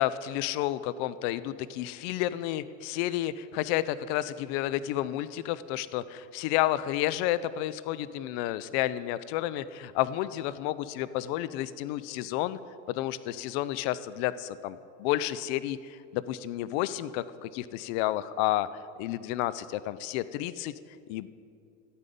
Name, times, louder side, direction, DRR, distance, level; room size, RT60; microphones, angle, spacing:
voice 1, 0.0-12.6 12.9-18.7 19.0-20.7 21.1-21.3, left 14 dB, 55° left, 16 dB, 0.6 m, -31 dB
11.5 x 8.5 x 5.3 m, 2.5 s
hypercardioid pair, 80°, 41 cm